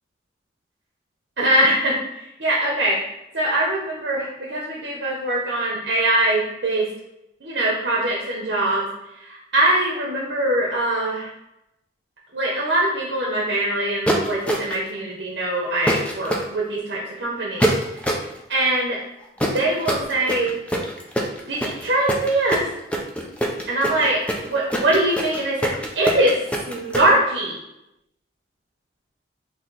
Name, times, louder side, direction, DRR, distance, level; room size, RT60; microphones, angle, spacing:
voice 1, 1.4-3.0 3.3-6.9 7.4-8.9 9.2-11.3 12.3-17.7 18.5-19.0 19.5-20.6 21.5-22.6 23.7-24.2 24.5-26.4 26.6-27.6, right 1 dB, 70° right, -4 dB, 0.8 m, -22 dB
sound 1, 14.1-14.9 15.9-16.4 17.6-18.3 19.4-27.1, right 1 dB, 5° left, 0.4 m, -24 dB
4.2 x 2.8 x 3.9 m, 0.89 s
head